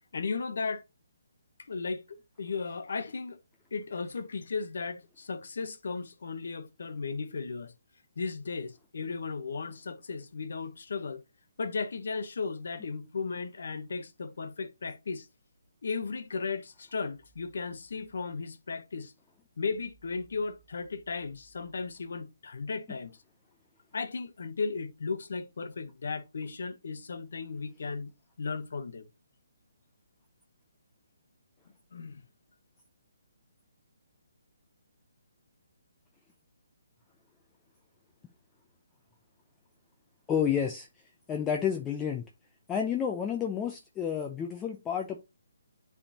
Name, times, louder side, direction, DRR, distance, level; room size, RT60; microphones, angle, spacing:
voice 1, 0.1-0.8 1.7-3.4 3.7-7.7 8.2-11.2 11.6-15.3 15.8-19.1 19.6-23.2 23.9-28.1 28.4-29.1 31.9-32.2, left 4 dB, 65° left, 0.9 m, -35 dB
voice 2, 40.3-40.9 41.3-42.2 42.7-45.2, left 8 dB, 10° left, 0.5 m, -30 dB
9.7 x 3.5 x 2.8 m
hypercardioid pair, 170°, 0 cm